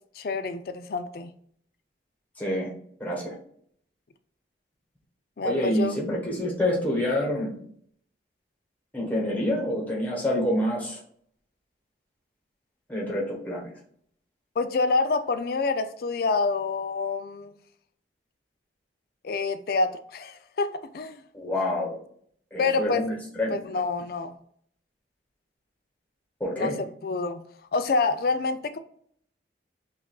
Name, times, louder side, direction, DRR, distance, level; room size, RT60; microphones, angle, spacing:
voice 1, 0.2-1.3 5.4-6.0 14.6-17.5 19.2-21.2 22.6-23.1 23.5-24.3 26.5-27.5 27.7-28.8, left 4 dB, 55° left, 0.4 m, -27 dB
voice 2, 2.4-2.7 3.0-3.3 5.4-7.5 8.9-11.0 12.9-13.7 21.3-22.0 22.5-23.6 26.4-26.8, left 1 dB, 10° left, 1.1 m, -27 dB
5.7 x 2.5 x 2.3 m
head